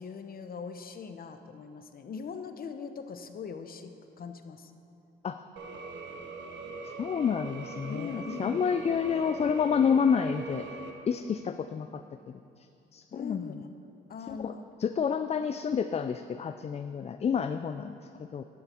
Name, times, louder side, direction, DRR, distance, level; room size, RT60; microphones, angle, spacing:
voice 1, 0.0-4.7 7.9-8.6 13.1-13.7 14.1-14.6, left 5 dB, 50° left, 8 dB, 0.8 m, -41 dB
sound 1, 5.6-10.9, right 4 dB, 65° right, 1.1 m, -42 dB
voice 2, 7.0-10.7 11.1-12.0 12.3-12.4 12.9-13.6 14.3-14.5 14.8-18.4, left 6 dB, 35° left, 9 dB, 0.4 m, -29 dB
12.0 x 9.7 x 4.4 m, 2.7 s
cardioid pair, 90°, 20 cm